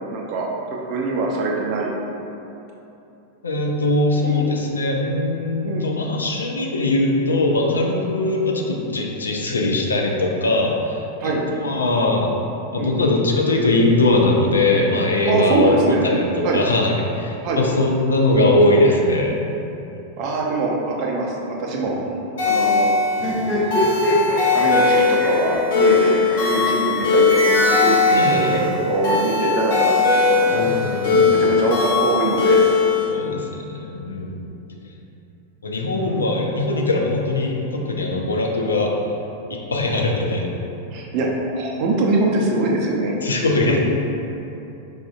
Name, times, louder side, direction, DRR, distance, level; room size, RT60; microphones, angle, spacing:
voice 1, 0.1-1.9 4.2-4.5 5.6-5.9 11.2-11.4 12.8-12.9 15.3-16.0 16.4-16.6 17.4-17.6 20.2-22.0 22.4-23.0 24.5-30.6 31.1-32.6 33.2-33.4 36.0-36.3 40.9-41.3 41.5-43.1 43.5-43.8, right 2 dB, 40° right, -1 dB, 0.5 m, -23 dB
voice 2, 3.4-12.3 12.7-19.4 28.1-28.7 30.5-31.4 33.1-34.5 35.6-38.9 39.7-40.5 43.2-43.8, left 2 dB, 75° left, 0 dB, 0.4 m, -21 dB
sound 1, 22.4-33.0, left 4 dB, 60° left, 1.0 m, -19 dB
sound 2, 23.1-29.3 30.3-31.4, left 1 dB, 10° left, 0.9 m, -26 dB
4.8 x 2.4 x 2.3 m, 2.9 s
figure-of-eight pair, 90°, 0 cm